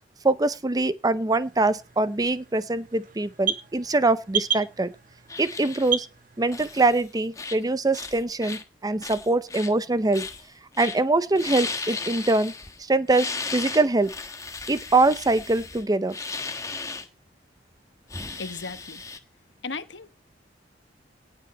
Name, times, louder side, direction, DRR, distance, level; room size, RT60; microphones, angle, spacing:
voice 1, 0.2-4.9 5.4-6.1 6.4-10.3 10.8-12.5 12.9-14.1 14.7-16.2, right 2 dB, 20° right, 0.6 m, -23 dB
sound 1, 1.4-6.9, right 9 dB, 50° right, 1.8 m, -34 dB
sound 2, 5.3-5.9 6.5-7.0 7.3-7.6 7.9-8.6 9.0-9.7 10.1-10.5 10.7-11.0 11.3-12.8 13.1-17.1 18.1-19.2, left 4 dB, 20° left, 1.2 m, -35 dB
voice 2, 18.4-19.0 19.6-20.2, left 4 dB, 75° left, 1.1 m, -36 dB
18.0 x 6.9 x 4.2 m
head